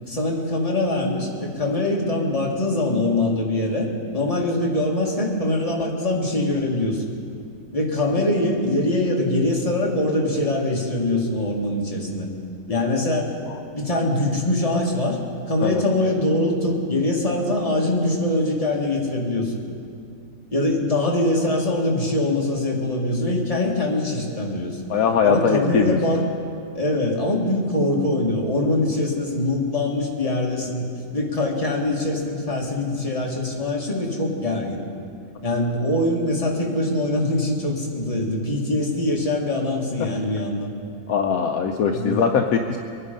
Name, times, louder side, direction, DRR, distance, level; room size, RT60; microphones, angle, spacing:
voice 1, 0.1-7.0 7.7-12.3 12.7-13.3 13.7-15.2 15.5-19.5 20.5-24.8 25.2-26.3 26.7-30.9 31.1-34.8 35.4-40.7 41.9-42.2, left 1 dB, 25° left, -2 dB, 2.0 m, -23 dB
voice 2, 24.9-26.2 41.1-42.8, left 6 dB, 70° left, 4 dB, 1.1 m, -21 dB
23.0 x 9.8 x 5.3 m, 2.5 s
omnidirectional pair, 1.6 m